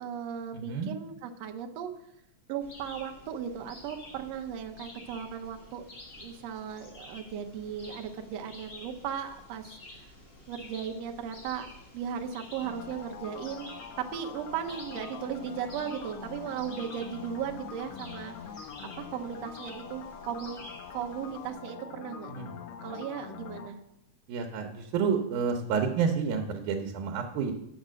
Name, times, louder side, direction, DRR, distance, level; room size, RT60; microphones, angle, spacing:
voice 1, 0.0-1.9 2.5-5.8 6.2-10.1 10.5-18.4 19.0-20.6 20.9-22.3 22.8-23.8, right 8 dB, 70° right, 4 dB, 1.8 m, -37 dB
voice 2, 0.5-0.9 22.3-22.5 24.3-27.5, right 6 dB, 90° right, 4 dB, 2.3 m, -29 dB
sound 1, 2.6-21.5, left 1 dB, 45° left, 0.7 m, -50 dB
sound 2, 12.6-23.7, left 7 dB, 75° left, 1.6 m, -44 dB
8.2 x 6.6 x 6.2 m, 0.82 s
omnidirectional pair, 3.4 m